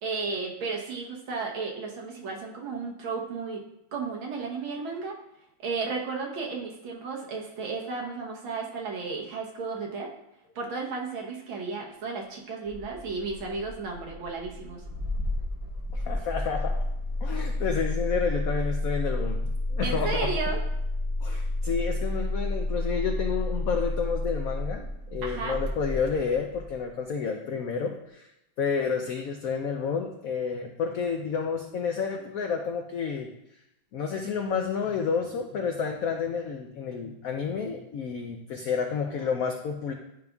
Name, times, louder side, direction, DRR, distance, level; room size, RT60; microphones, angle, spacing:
voice 1, 0.0-3.6 3.9-5.2 5.6-10.1 10.6-14.8 19.8-20.6 25.2-25.6, right 4 dB, 85° right, 0 dB, 1.9 m, -33 dB
Engine starting, 12.6-26.8, left 1 dB, 15° right, 0.6 m, -31 dB
voice 2, 15.9-16.7 17.2-20.3 21.2-24.8 25.1-28.3 28.6-33.3 33.9-39.9, left 6 dB, 80° left, 3 dB, 0.7 m, -30 dB
11.0 x 5.1 x 2.3 m, 0.84 s
omnidirectional pair, 2.1 m